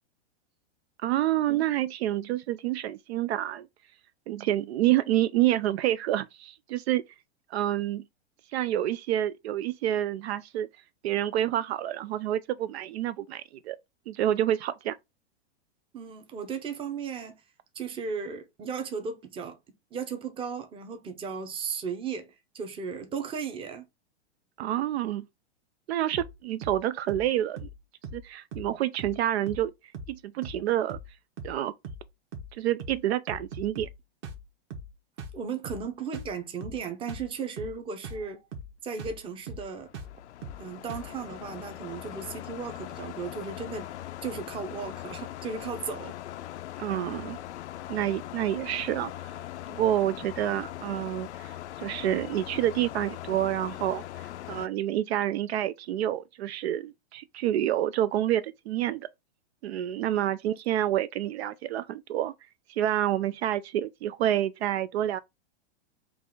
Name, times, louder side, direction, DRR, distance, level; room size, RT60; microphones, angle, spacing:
voice 1, 1.0-3.7 4.3-7.0 7.5-8.1 8.5-10.7 11.0-13.8 14.1-15.0 24.6-25.3 25.9-27.7 28.1-29.7 30.1-31.0 31.4-31.7 32.5-33.9 46.8-47.4 47.9-49.3 49.7-51.5 51.8-59.1 59.6-62.3 62.7-65.2, right 12 dB, 70° right, 0.5 m, -28 dB
voice 2, 15.9-17.4 17.7-19.6 19.9-23.8 35.3-38.4 38.8-39.9 40.6-43.9 44.2-46.1 60.1-60.2, right 5 dB, 15° right, 0.7 m, -36 dB
sound 1, 26.1-26.4 26.6-26.8 27.1-27.3 27.6-27.8 28.0-28.3 28.5-28.7 29.0-29.2 29.5-29.7 29.9-30.2 30.4-30.6 30.9-31.1 31.4-31.6 31.8-32.1 32.3-32.5 32.8-33.0 33.3-34.0 34.2-34.4 34.7-34.9 35.2-35.4 35.7-35.9 36.1-36.4 36.6-36.8 37.1-37.3 37.6-37.8 38.0-38.3 38.5-38.7 39.0-39.2 39.5-39.7 39.9-40.2 40.4-40.6 40.9-41.1, right 2 dB, 35° right, 1.1 m, -40 dB
sound 2, 39.6-54.7, left 13 dB, 85° left, 0.5 m, -41 dB
4.7 x 2.5 x 3.7 m
hypercardioid pair, 135°, 33 cm